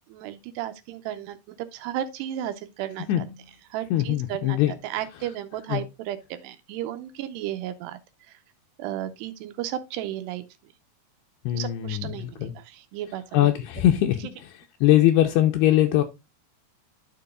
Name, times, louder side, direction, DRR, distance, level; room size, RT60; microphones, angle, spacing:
voice 1, 0.1-3.3 3.7-8.0 8.3-8.4 8.8-10.4 11.5-13.5, right 12 dB, 80° right, 2.7 m, -34 dB
voice 2, 3.9-4.7 5.7-5.8 11.5-12.5 13.3-14.2 14.8-16.0, left 13 dB, 80° left, 2.5 m, -21 dB
12.0 x 4.8 x 2.4 m
omnidirectional pair, 5.1 m